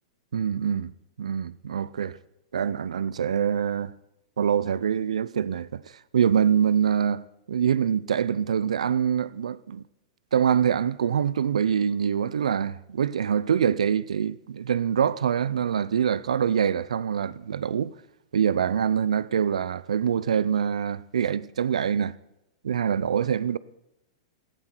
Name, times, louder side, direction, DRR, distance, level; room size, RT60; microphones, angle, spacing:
voice 1, 0.3-2.2 2.5-3.9 4.4-9.8 10.3-18.0 18.3-22.1 22.6-23.6, right 8 dB, 85° right, 0.6 m, -25 dB
16.5 x 15.0 x 4.6 m
hypercardioid pair, 115°, 3 cm